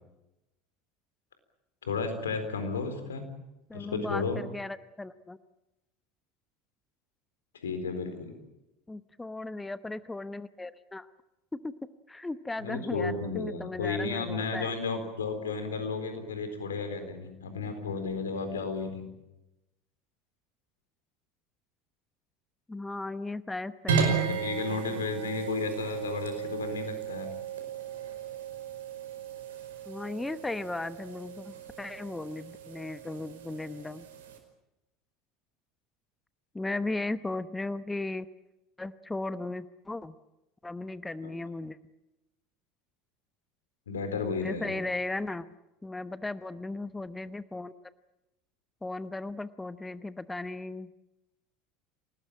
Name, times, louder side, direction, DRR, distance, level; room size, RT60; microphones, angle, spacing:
voice 1, 1.8-3.3 3.7-4.4 7.6-8.3 12.6-19.0 24.0-27.3 41.2-41.3 43.9-44.8, left 4 dB, 80° left, 8 dB, 4.0 m, -33 dB
voice 2, 3.7-5.4 8.9-11.1 11.6-11.7 12.1-14.7 22.7-24.4 29.9-34.1 36.5-38.3 38.8-40.1 40.6-41.8 44.4-45.5 45.8-47.7 48.8-50.9, left 2 dB, 10° left, 14 dB, 0.9 m, -36 dB
sound 1, 23.9-34.4, right 6 dB, 75° right, 5.1 m, -35 dB
27.5 x 19.0 x 8.7 m, 0.96 s
hypercardioid pair, 75°, 0 cm